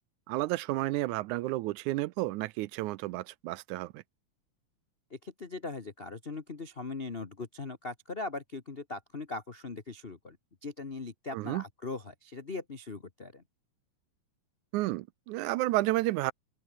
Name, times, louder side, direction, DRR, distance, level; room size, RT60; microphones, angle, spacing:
voice 1, 0.3-4.0 11.3-11.6 14.7-16.3, right 18 dB, 80° right, 2.0 m, -31 dB
voice 2, 5.1-10.4 10.6-13.4, left 3 dB, 55° left, 0.6 m, -40 dB
open air
omnidirectional pair, 3.6 m